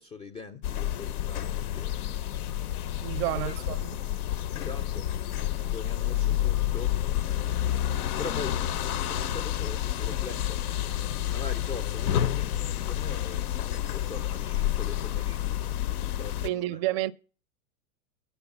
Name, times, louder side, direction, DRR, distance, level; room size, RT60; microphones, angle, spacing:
voice 1, 0.0-2.2 3.1-3.9 4.5-5.1 5.4-7.0 8.2-16.8, left 4 dB, 15° left, 0.4 m, -42 dB
sound 1, 0.6-16.5, left 11 dB, 80° left, 0.6 m, -29 dB
voice 2, 3.0-3.8 16.4-17.1, right 16 dB, 45° right, 0.4 m, -29 dB
8.1 x 5.6 x 6.9 m
hypercardioid pair, 90°, 45 cm